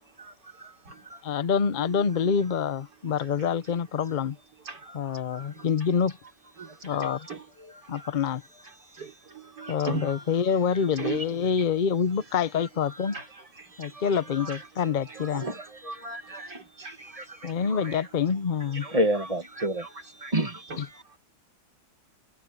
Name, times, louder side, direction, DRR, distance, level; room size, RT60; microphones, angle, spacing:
voice 1, 0.2-0.7 1.0-1.4 4.7-5.5 6.6-8.1 9.4-10.2 12.6-18.1 18.8-21.0, right 1 dB, 20° right, 1.6 m, -35 dB
voice 2, 1.2-4.4 4.9-6.1 6.8-7.3 7.9-8.4 9.7-13.2 13.8-15.4 17.4-18.9, left 7 dB, 45° left, 0.6 m, -26 dB
voice 3, 1.8-2.4 4.7-4.8 5.5-5.7 7.3-7.4 9.0-10.1 11.0-11.3 13.1-13.3 13.8-13.9 14.5-14.6 15.1-15.2 16.5-16.9 17.5-17.9, right 4 dB, 80° right, 4.4 m, -37 dB
omnidirectional pair, 1.8 m